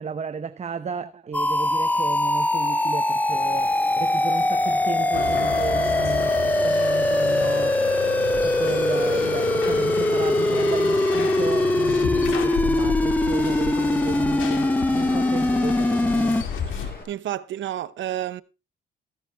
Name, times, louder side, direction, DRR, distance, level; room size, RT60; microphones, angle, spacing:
voice 1, 0.0-7.8 8.4-16.4, right 6 dB, 35° right, 0.8 m, -33 dB
sound 1, 1.3-16.4, left 1 dB, 10° left, 0.6 m, -22 dB
Water, 3.3-17.0, left 2 dB, 45° left, 7.8 m, -43 dB
sound 2, 5.1-16.9, left 7 dB, 80° left, 2.5 m, -32 dB
voice 2, 16.7-18.4, right 12 dB, 70° right, 0.9 m, -31 dB
15.5 x 10.5 x 3.5 m
cardioid pair, 90°, 20 cm